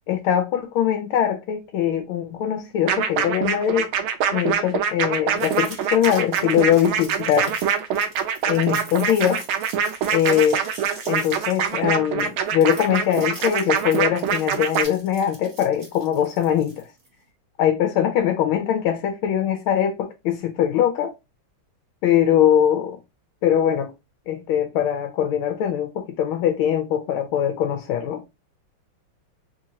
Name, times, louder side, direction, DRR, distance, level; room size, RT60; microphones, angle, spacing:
voice 1, 0.1-3.9 4.3-7.5 8.5-9.4 10.1-10.6 11.1-16.9 17.6-21.1 22.0-23.0 23.4-23.9 24.3-28.2, left 10 dB, 85° left, 1.4 m, -22 dB
sound 1, 2.9-14.8, right 7 dB, 85° right, 1.4 m, -24 dB
sound 2, 5.3-17.1, right 2 dB, 35° right, 0.9 m, -42 dB
3.8 x 2.8 x 2.7 m
omnidirectional pair, 2.2 m